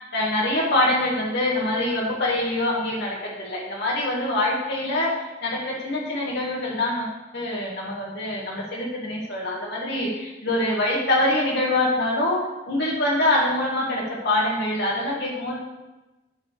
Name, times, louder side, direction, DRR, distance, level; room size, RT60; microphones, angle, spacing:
voice 1, 0.1-15.6, left 1 dB, 60° left, -4 dB, 1.5 m, -24 dB
10.5 x 4.2 x 6.3 m, 1.1 s
head